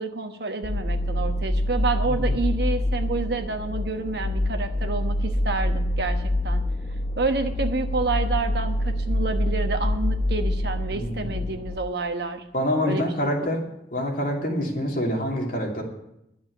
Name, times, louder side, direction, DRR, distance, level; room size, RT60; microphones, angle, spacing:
voice 1, 0.0-6.6 7.2-12.4 12.8-13.5, right 3 dB, 65° right, 7 dB, 1.1 m, -29 dB
sound 1, 0.6-11.8, left 1 dB, 30° left, 0.8 m, -26 dB
voice 2, 10.9-11.4 12.5-13.6 13.9-15.8, equal, 50° left, -1 dB, 2.9 m, -26 dB
11.5 x 7.2 x 9.3 m, 0.82 s
head